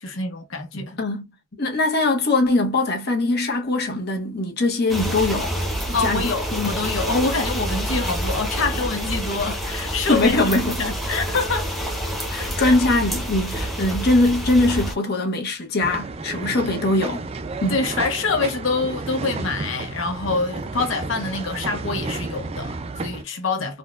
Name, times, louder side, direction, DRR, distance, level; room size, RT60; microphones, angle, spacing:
voice 1, 0.0-1.0 5.9-10.4 10.8-11.8 12.4-12.7 17.7-23.8, left 3 dB, 85° left, 0.9 m, -26 dB
voice 2, 1.6-5.5 6.0-6.7 10.1-10.8 12.3-17.3 17.6-17.8, left 2 dB, 55° left, 0.9 m, -21 dB
sound 1, 4.9-14.9, equal, ahead, 0.8 m, -27 dB
sound 2, 15.8-23.2, right 3 dB, 30° right, 0.3 m, -31 dB
4.1 x 2.2 x 2.3 m
head